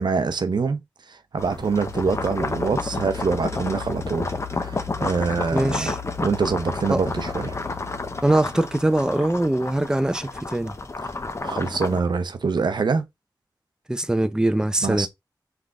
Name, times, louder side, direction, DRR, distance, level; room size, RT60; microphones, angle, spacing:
voice 1, 0.0-5.9 6.2-7.6 11.1-13.1 14.8-15.1, right 4 dB, 70° right, 0.6 m, -25 dB
sound 1, 1.4-12.0, left 3 dB, 40° left, 0.7 m, -30 dB
voice 2, 5.5-6.0 6.9-7.0 8.2-10.7 13.9-15.1, right 1 dB, 10° right, 0.5 m, -22 dB
3.8 x 3.4 x 3.5 m
wide cardioid pair, 60°, 8 cm